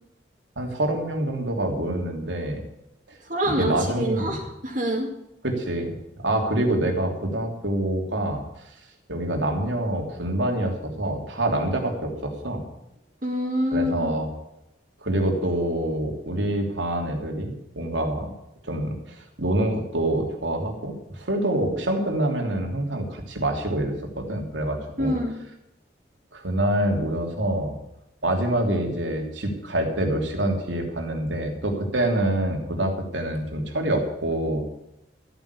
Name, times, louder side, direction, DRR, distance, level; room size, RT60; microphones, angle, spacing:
voice 1, 0.6-2.6 3.1-3.2 3.6-4.3 5.4-8.4 9.1-12.6 13.7-14.3 15.0-18.3 18.6-25.1 26.3-27.8 28.2-34.6, right 1 dB, 80° right, 2 dB, 3.1 m, -26 dB
voice 2, 3.2-5.1 13.2-14.2 25.0-25.4, equal, 45° right, -2 dB, 2.3 m, -26 dB
14.0 x 9.3 x 8.3 m, 0.86 s
head